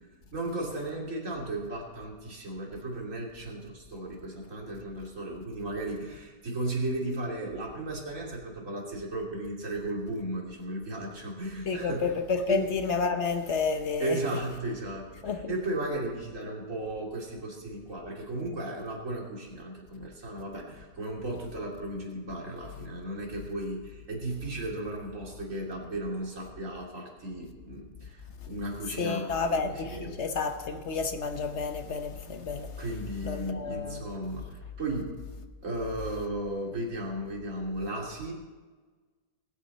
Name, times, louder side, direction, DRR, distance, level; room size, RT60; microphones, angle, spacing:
voice 1, 0.3-12.0 12.5-12.7 14.0-29.3 29.6-30.1 32.8-35.1 35.6-38.3, right 1 dB, 45° right, 3.0 m, -35 dB
voice 2, 11.6-14.2 15.2-15.5 28.4-28.5 29.0-32.8 33.2-34.1, left 5 dB, 50° left, 1.0 m, -30 dB
20.0 x 8.7 x 4.2 m
omnidirectional pair, 1.9 m